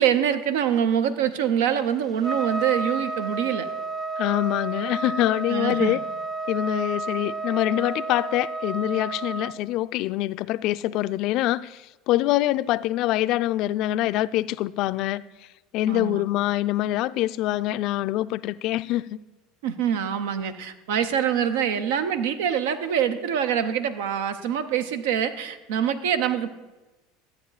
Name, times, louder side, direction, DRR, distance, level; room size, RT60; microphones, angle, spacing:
voice 1, 0.0-3.7 5.5-6.0 15.9-16.2 19.6-26.5, right 9 dB, 80° right, 0.7 m, -25 dB
Trumpet, 2.2-9.5, right 3 dB, 15° right, 0.6 m, -31 dB
voice 2, 4.2-6.0 6.5-15.2 15.7-19.2, left 15 dB, 60° left, 0.3 m, -25 dB
13.0 x 8.6 x 4.0 m
supercardioid pair, 100°, 0 cm